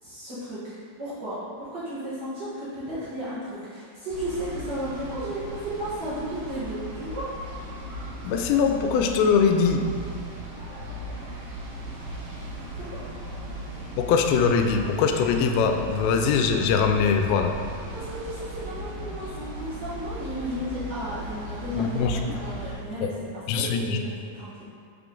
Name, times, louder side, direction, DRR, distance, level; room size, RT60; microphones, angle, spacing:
voice 1, 0.0-7.3 12.7-13.0 17.9-24.6, right 1 dB, 85° right, -12 dB, 0.9 m, -34 dB
sound 1, 4.1-22.7, equal, 65° right, 2.4 m, -37 dB
voice 2, 8.2-9.9 14.0-17.6 21.8-22.4 23.0-23.1 23.5-24.0, left 6 dB, 85° left, 5 dB, 2.3 m, -22 dB
6.3 x 4.8 x 3.7 m, 2.1 s
omnidirectional pair, 4.2 m